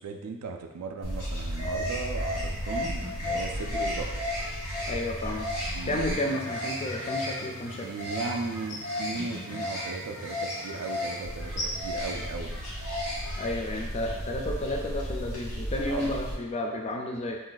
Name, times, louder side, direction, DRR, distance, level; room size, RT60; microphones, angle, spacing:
voice 1, 0.0-4.1 5.7-6.0 7.8-12.6 15.8-16.2, right 4 dB, 80° right, 4 dB, 0.4 m, -37 dB
sound 1, 1.0-16.3, equal, 90° left, 1.1 m, -33 dB
voice 2, 4.9-5.5 5.8-7.9 13.4-17.4, left 1 dB, 30° left, 1 dB, 0.3 m, -31 dB
2.5 x 2.2 x 3.8 m, 1.0 s
head